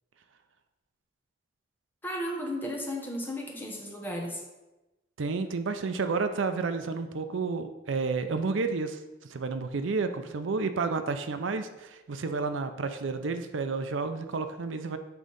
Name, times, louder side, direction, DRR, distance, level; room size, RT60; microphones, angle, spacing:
voice 1, 2.0-4.4, equal, 10° left, -1 dB, 1.2 m, -34 dB
voice 2, 5.2-9.0 9.3-15.0, right 4 dB, 85° right, 9 dB, 0.5 m, -31 dB
8.3 x 3.7 x 5.3 m, 1.0 s
head